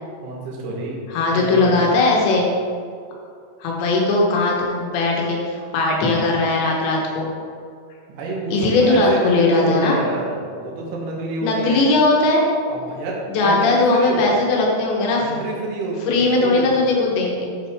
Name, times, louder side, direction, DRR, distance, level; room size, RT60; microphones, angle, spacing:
voice 1, 0.2-1.0 1.3-1.9 8.1-11.9 12.7-14.4 15.2-16.8, right 2 dB, 70° right, -3 dB, 3.3 m, -28 dB
voice 2, 1.1-2.5 3.6-5.4 5.7-7.3 8.5-10.0 11.4-12.4 13.4-15.3 16.1-17.5, left 2 dB, 80° left, -2 dB, 3.5 m, -18 dB
8.2 x 7.2 x 3.6 m, 2.2 s
omnidirectional pair, 5.1 m